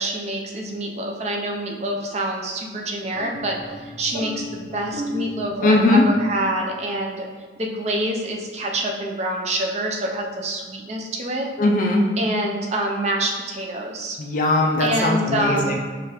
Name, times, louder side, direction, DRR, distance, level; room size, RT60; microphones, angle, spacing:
voice 1, 0.0-7.3 7.6-11.5 12.2-14.2 14.8-15.8, right 1 dB, 35° right, 0 dB, 0.4 m, -26 dB
sound 1, 3.1-6.6, equal, 55° right, 0.8 m, -33 dB
voice 2, 5.6-6.1 11.6-12.0 14.2-15.8, left 2 dB, 45° left, 1 dB, 0.4 m, -19 dB
4.8 x 2.3 x 2.9 m, 1.4 s
head